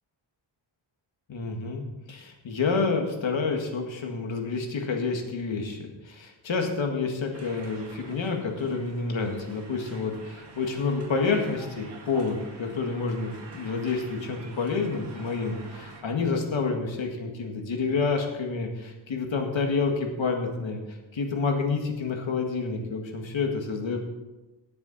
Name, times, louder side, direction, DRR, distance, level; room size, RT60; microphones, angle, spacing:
voice 1, 1.3-24.0, left 4 dB, 75° left, 3 dB, 2.0 m, -29 dB
sound 1, 7.3-16.0, right 3 dB, 60° right, 2.2 m, -47 dB
17.5 x 7.0 x 4.1 m, 1.1 s
wide cardioid pair, 135°, 47 cm